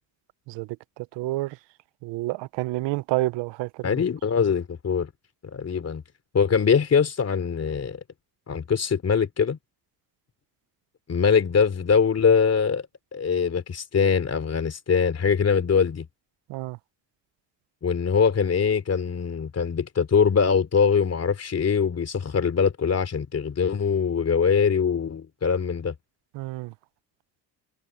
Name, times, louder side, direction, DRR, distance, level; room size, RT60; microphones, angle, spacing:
voice 1, 1.2-1.5 2.0-3.7 16.5-16.8 26.4-26.7, right 19 dB, 90° right, 0.8 m, -28 dB
voice 2, 3.8-5.1 5.5-6.0 6.3-8.0 8.5-9.6 11.1-12.8 13.1-16.1 17.8-25.9, left 6 dB, 35° left, 3.5 m, -22 dB
cardioid pair, 110°, 41 cm